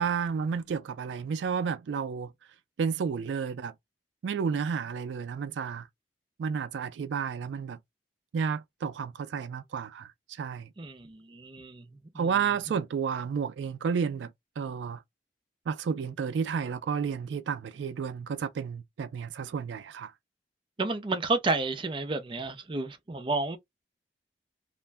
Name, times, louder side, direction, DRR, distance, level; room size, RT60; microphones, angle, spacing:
voice 1, 0.0-2.3 2.8-3.7 4.2-5.9 6.4-7.8 8.3-10.7 12.2-14.3 14.6-15.0 15.7-20.1, right 6 dB, 85° right, 0.3 m, -31 dB
voice 2, 10.8-11.9 12.1-12.3 20.8-23.6, right 3 dB, 30° right, 0.5 m, -31 dB
2.5 x 2.1 x 3.3 m
head